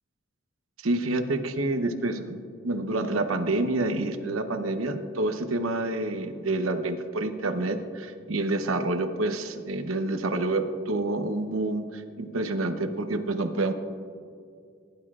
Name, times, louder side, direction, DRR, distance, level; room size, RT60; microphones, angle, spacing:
voice 1, 0.8-2.4 2.6-13.7, right 2 dB, 85° right, 7 dB, 0.9 m, -28 dB
20.5 x 11.5 x 2.4 m, 2.3 s
head